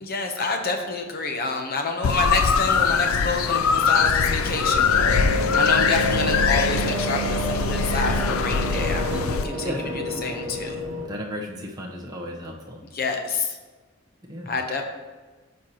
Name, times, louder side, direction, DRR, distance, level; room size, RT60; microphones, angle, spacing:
voice 1, 0.0-10.8 12.9-13.6 14.5-14.8, left 3 dB, 45° left, 4 dB, 0.9 m, -28 dB
sound 1, 2.0-9.4, left 6 dB, 85° left, 0.4 m, -22 dB
sound 2, 3.7-11.1, equal, 65° right, 1.0 m, -29 dB
voice 2, 6.2-6.6 9.6-10.2 11.1-12.8 14.3-14.5, equal, 20° right, -1 dB, 0.9 m, -35 dB
13.0 x 4.5 x 3.0 m, 1.3 s
head